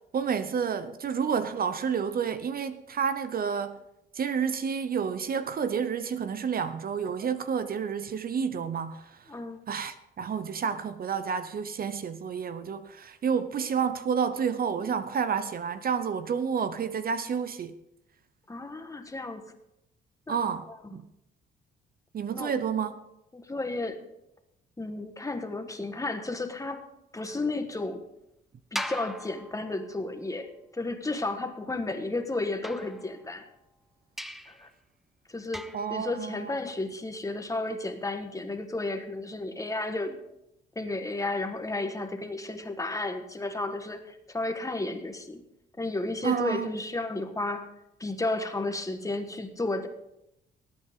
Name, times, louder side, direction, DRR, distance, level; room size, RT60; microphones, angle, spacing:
voice 1, 0.1-3.8 4.1-9.2 9.7-17.8 20.3-21.0 22.1-23.0 35.7-36.6 46.2-46.7, right 6 dB, 50° right, 0.7 m, -30 dB
voice 2, 9.3-9.6 18.5-19.4 20.3-20.4 20.8-21.0 22.3-22.5 23.3-24.0 24.8-26.8 27.1-28.0 28.7-33.5 34.5-34.7 35.3-40.1 40.7-45.4 45.8-47.7 48.0-49.9, left 2 dB, 15° left, 1.5 m, -33 dB
sound 1, 28.8-30.1 32.6-33.5 34.2-34.7 35.5-36.0, equal, ahead, 0.8 m, -39 dB
19.5 x 8.7 x 3.7 m
cardioid pair, 90°, 20 cm